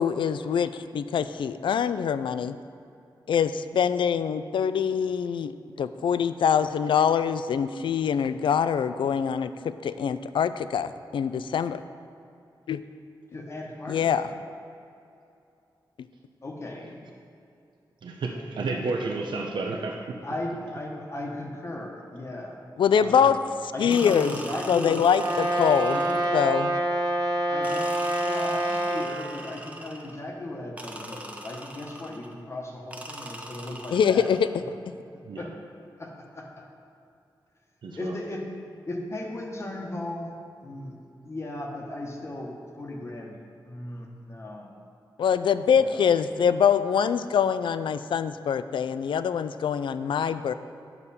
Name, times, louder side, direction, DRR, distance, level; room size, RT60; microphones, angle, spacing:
voice 1, 0.0-2.5 3.3-5.5 5.8-9.5 9.8-11.8 12.7-12.8 13.9-14.3 22.8-23.4 23.8-24.4 24.7-26.0 26.3-26.8 33.9-34.4 34.9-35.0 45.2-50.5, left 7 dB, 85° left, 13 dB, 0.3 m, -24 dB
voice 2, 13.3-14.3 16.4-17.0 20.2-22.6 22.9-23.3 23.7-25.0 25.9-26.2 27.5-27.9 28.2-34.3 35.4-35.5 36.0-36.1 36.4-36.5 38.0-38.4 38.9-40.3 40.6-40.9 41.2-43.4 43.6-44.7 45.8-46.1, left 1 dB, 35° left, -1 dB, 1.1 m, -36 dB
voice 3, 18.0-20.2 35.2-35.5 37.8-38.2 46.0-46.1, right 3 dB, 70° right, 0 dB, 0.7 m, -31 dB
sound 1, 23.9-26.5 27.6-30.2 30.8-32.3 32.9-34.5, right 1 dB, 15° right, 0.7 m, -41 dB
Brass instrument, 25.1-29.1, right 1 dB, 50° right, 1.1 m, -26 dB
9.5 x 6.7 x 4.2 m, 2.5 s
wide cardioid pair, 145°, 8 cm